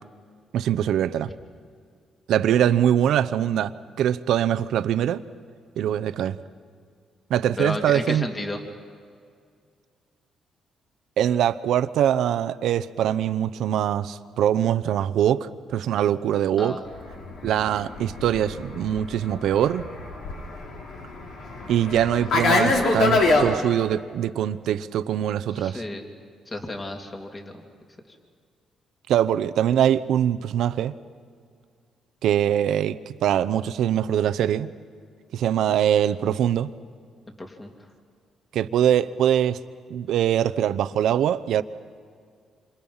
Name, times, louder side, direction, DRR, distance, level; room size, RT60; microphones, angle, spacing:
voice 1, 0.5-1.3 2.3-3.7 4.0-5.2 5.8-6.4 7.3-8.3 11.2-16.8 17.4-19.9 21.7-25.8 29.1-30.9 32.2-34.7 35.3-36.7 38.5-39.6 39.9-41.6, right 10 dB, 80° right, 0.8 m, -23 dB
voice 2, 7.6-8.6 16.6-16.8 25.6-26.0 26.5-27.5 37.4-37.7, left 2 dB, 25° left, 2.9 m, -32 dB
Fixed-wing aircraft airplane, 17.0-23.5, left 3 dB, 75° left, 3.5 m, -25 dB
27.5 x 25.5 x 5.7 m
cardioid pair, 90°, 0 cm